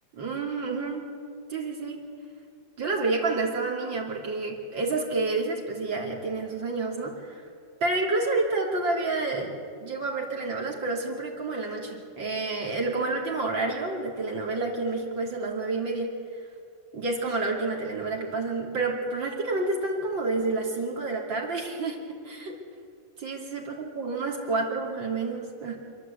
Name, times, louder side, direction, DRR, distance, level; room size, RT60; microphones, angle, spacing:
voice 1, 0.2-1.1 1.5-2.0 2.8-7.4 7.8-9.5 9.8-16.1 16.9-22.5 23.2-25.8, right 3 dB, 70° right, -1 dB, 3.6 m, -29 dB
27.5 x 11.5 x 8.3 m, 2.2 s
omnidirectional pair, 2.1 m